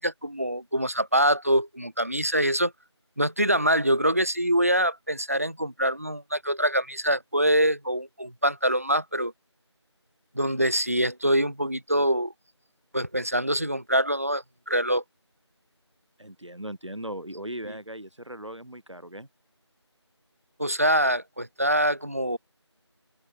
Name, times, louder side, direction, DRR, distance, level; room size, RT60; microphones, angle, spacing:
voice 1, 0.0-2.7 3.2-9.3 10.3-12.3 12.9-15.0 17.7-17.8 20.6-22.4, equal, 30° right, 0.9 m, -24 dB
voice 2, 16.2-19.3, right 1 dB, 85° right, 4.6 m, -38 dB
open air
figure-of-eight pair, 175°, 15 cm